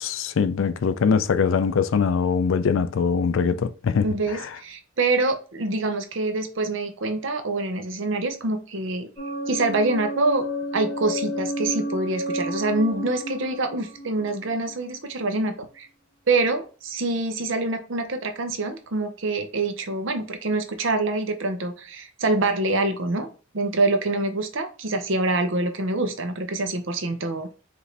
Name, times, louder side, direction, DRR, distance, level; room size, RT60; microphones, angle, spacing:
voice 1, 0.0-4.6, left 6 dB, 65° left, 0.4 m, -22 dB
voice 2, 4.0-9.1 9.5-10.4 10.7-15.9 16.3-23.3 23.5-27.5, right 2 dB, 60° right, 0.7 m, -25 dB
sound 1, 9.2-15.0, equal, 20° left, 2.3 m, -31 dB
4.8 x 2.6 x 3.2 m
head